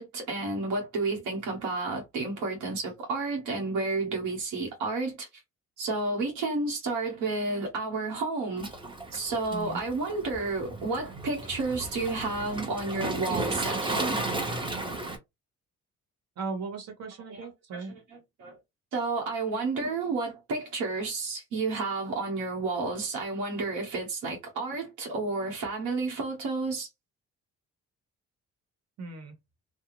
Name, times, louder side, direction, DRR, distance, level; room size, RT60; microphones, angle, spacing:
voice 1, 0.0-5.3 5.8-8.7 9.1-14.2 17.3-18.6 18.9-26.9, right 3 dB, 90° right, 1.1 m, -31 dB
Waves surf, 8.6-15.2, right 2 dB, 15° right, 0.9 m, -34 dB
voice 2, 16.4-17.9 29.0-29.4, right 3 dB, 60° right, 1.3 m, -37 dB
2.5 x 2.3 x 3.1 m
cardioid pair, 90°, 30 cm